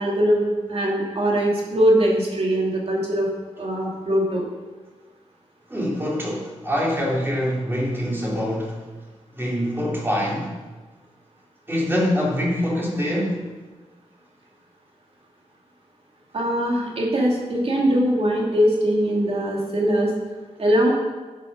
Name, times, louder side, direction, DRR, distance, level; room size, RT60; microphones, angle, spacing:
voice 1, 0.0-3.3 3.6-4.4 16.3-20.1 20.6-20.9, equal, 55° right, -2 dB, 2.9 m, -21 dB
voice 2, 5.7-8.8 9.4-10.5 11.7-13.5, equal, 20° right, -3 dB, 3.0 m, -24 dB
11.0 x 9.2 x 5.4 m, 1.3 s
wide cardioid pair, 140°, 12 cm